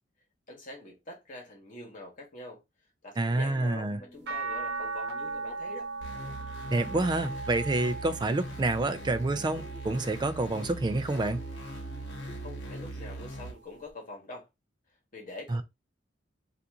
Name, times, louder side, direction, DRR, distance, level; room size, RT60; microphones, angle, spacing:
voice 1, 0.5-2.6 3.0-5.9 12.4-14.5 15.1-15.6, left 2 dB, 45° left, 1.3 m, -45 dB
voice 2, 3.2-4.0 6.7-11.4 15.5-15.6, right 2 dB, 25° right, 0.3 m, -28 dB
sound 1, 3.4-13.3, left 1 dB, 25° left, 1.2 m, -52 dB
sound 2, 4.3-10.6 11.1-12.5 13.9-14.0, right 4 dB, 60° right, 1.0 m, -39 dB
sound 3, 6.0-13.5, right 1 dB, 70° left, 1.0 m, -41 dB
2.8 x 2.5 x 3.5 m
head